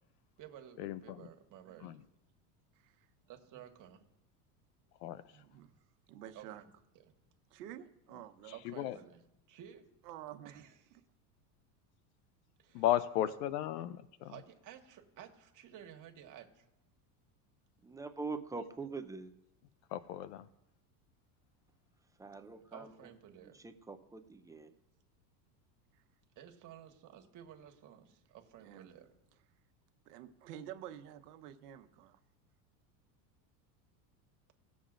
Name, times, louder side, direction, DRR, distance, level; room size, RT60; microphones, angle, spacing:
voice 1, 0.4-2.0 3.3-4.0 6.3-6.5 8.5-9.2 9.5-9.9 10.4-11.0 12.6-12.8 13.3-13.4 14.2-16.6 22.7-23.6 26.4-29.1, right 10 dB, 40° right, 3 dB, 1.5 m, -53 dB
voice 2, 5.3-5.7 6.1-6.6 7.5-8.8 10.0-10.6 22.3-22.6 28.6-28.9 30.1-32.2, right 11 dB, 80° right, 7 dB, 1.1 m, -50 dB
voice 3, 12.7-14.3 19.9-20.5, left 12 dB, 85° left, 15 dB, 0.6 m, -34 dB
voice 4, 17.8-19.3 22.2-23.1 23.5-24.7, right 3 dB, 10° right, 6 dB, 0.3 m, -44 dB
18.0 x 7.2 x 2.5 m, 0.87 s
supercardioid pair, 120°, 46 cm